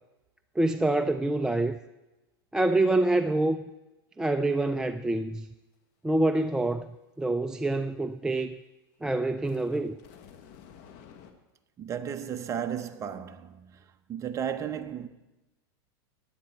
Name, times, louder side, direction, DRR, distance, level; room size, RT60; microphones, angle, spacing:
voice 1, 0.6-1.8 2.5-3.6 4.2-5.5 6.0-6.9 7.2-8.6 9.0-10.0, right 2 dB, 5° right, 0.3 m, -26 dB
sound 1, 9.4-11.3, left 8 dB, 55° left, 1.5 m, -51 dB
voice 2, 11.8-13.7 14.1-15.1, right 8 dB, 25° right, 0.8 m, -34 dB
15.0 x 10.5 x 4.4 m
supercardioid pair, 130°, 12 cm